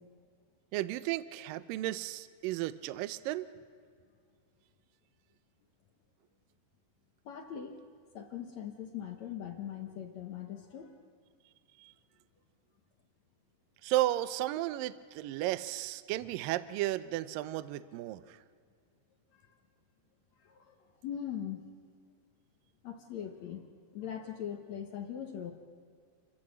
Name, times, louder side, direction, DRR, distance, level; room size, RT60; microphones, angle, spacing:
voice 1, 0.7-3.5 11.8-11.9 13.8-18.4, right 15 dB, 85° right, 14 dB, 2.0 m, -34 dB
voice 2, 7.2-7.8 8.1-11.0 19.3-19.4 20.4-20.7 21.0-21.6 22.8-25.5, left 9 dB, 70° left, 4 dB, 1.7 m, -41 dB
29.0 x 14.0 x 7.7 m, 2.2 s
omnidirectional pair, 4.8 m